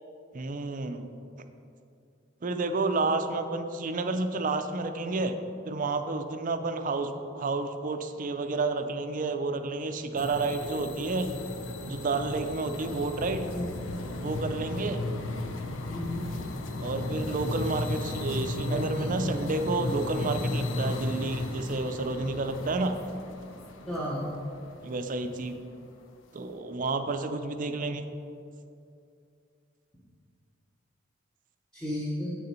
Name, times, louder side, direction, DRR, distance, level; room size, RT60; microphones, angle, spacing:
voice 1, 0.3-1.2 2.4-5.4 5.6-11.3 11.9-13.5 14.2-15.0 16.8-23.0 24.8-25.6 26.3-28.0, right 3 dB, 45° right, 8 dB, 0.5 m, -30 dB
sound 1, 10.2-25.5, left 2 dB, 85° left, 0.7 m, -35 dB
voice 2, 13.5-13.8 15.9-16.3 18.7-19.1 23.9-24.3 31.7-32.3, equal, 5° left, -7 dB, 1.1 m, -33 dB
8.3 x 6.7 x 4.3 m, 2.5 s
head